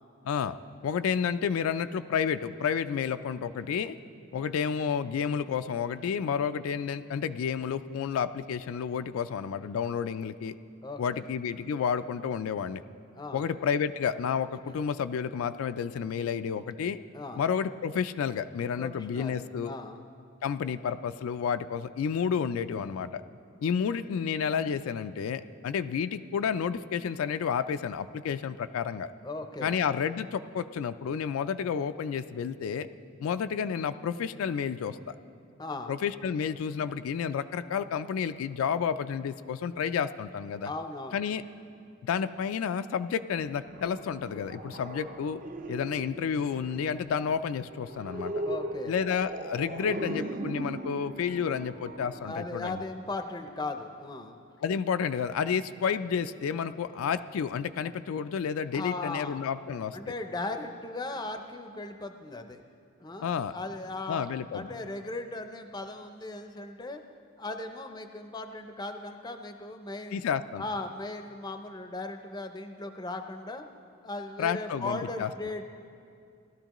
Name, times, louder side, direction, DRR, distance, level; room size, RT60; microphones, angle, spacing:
voice 1, 0.2-0.6 0.8-4.0 4.3-10.5 11.0-12.8 13.3-17.0 17.4-19.7 20.4-23.2 23.6-29.1 29.6-32.9 33.2-35.0 35.9-40.7 41.1-41.4 42.0-45.4 45.7-48.3 48.9-52.8 54.6-60.1 63.2-63.5 64.1-64.7 70.1-70.6 74.4-75.3, left 7 dB, 85° left, 11 dB, 0.3 m, -30 dB
voice 2, 10.8-11.3 13.1-13.5 17.1-17.5 18.8-19.3 19.6-20.0 29.2-29.7 35.6-36.0 40.6-41.2 48.4-48.9 52.2-54.4 58.7-59.4 59.9-62.6 63.0-67.0 67.4-70.2 70.6-73.7 74.0-75.6, left 2 dB, 20° left, 6 dB, 0.5 m, -37 dB
sound 1, 43.4-53.1, right 1 dB, 40° right, 0.6 m, -39 dB
17.5 x 12.5 x 3.0 m, 2.4 s
head